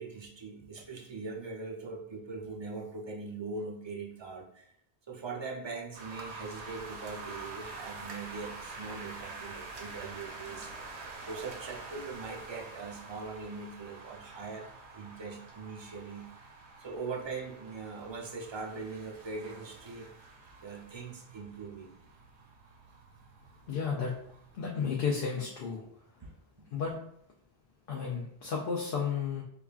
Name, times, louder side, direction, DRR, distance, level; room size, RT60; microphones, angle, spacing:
voice 1, 0.0-4.7 5.1-14.7 14.9-16.5 16.8-20.1 20.6-21.9 26.2-26.3 26.6-26.7, right 4 dB, 40° right, 1 dB, 0.4 m, -41 dB
sound 1, 5.9-24.6, right 3 dB, 85° right, 1.0 m, -47 dB
voice 2, 23.7-24.1 24.5-25.8 26.7-26.9 27.9-29.4, left 6 dB, 60° left, -2 dB, 0.8 m, -32 dB
4.9 x 2.3 x 2.3 m, 0.69 s
omnidirectional pair, 1.1 m